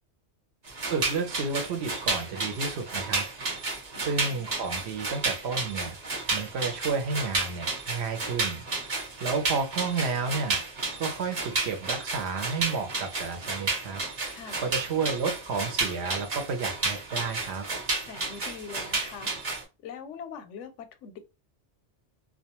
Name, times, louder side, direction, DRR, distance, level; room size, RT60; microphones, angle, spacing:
sound 1, 0.7-19.6, right 3 dB, 40° right, 0.8 m, -32 dB
voice 1, 0.9-3.2 4.0-6.0 6.3-8.6 9.2-10.6 11.0-14.0 14.6-17.7, right 4 dB, 65° right, 0.9 m, -31 dB
voice 2, 3.9-4.4 14.3-14.7 18.1-19.3 19.8-21.2, left 6 dB, 85° left, 0.9 m, -43 dB
2.3 x 2.2 x 2.9 m
omnidirectional pair, 1.2 m